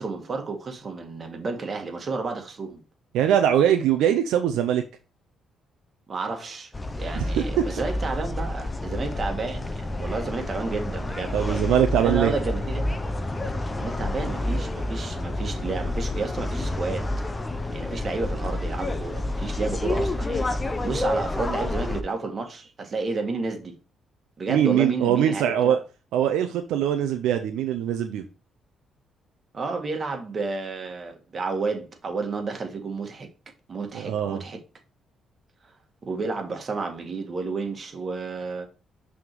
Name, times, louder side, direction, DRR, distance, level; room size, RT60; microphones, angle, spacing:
voice 1, 0.0-2.8 6.1-6.7 7.0-11.6 12.0-12.9 13.7-17.1 17.7-20.5 20.8-23.8 24.4-25.8 29.5-33.3 33.7-34.6 36.0-38.7, right 3 dB, 40° right, 1.6 m, -31 dB
voice 2, 3.1-4.8 7.1-7.4 11.3-12.3 24.5-25.8 26.1-28.2 33.9-34.4, right 10 dB, 90° right, 0.5 m, -22 dB
sound 1, 6.7-22.0, left 1 dB, 20° left, 0.8 m, -29 dB
6.1 x 3.6 x 4.6 m
cardioid pair, 90°, 0 cm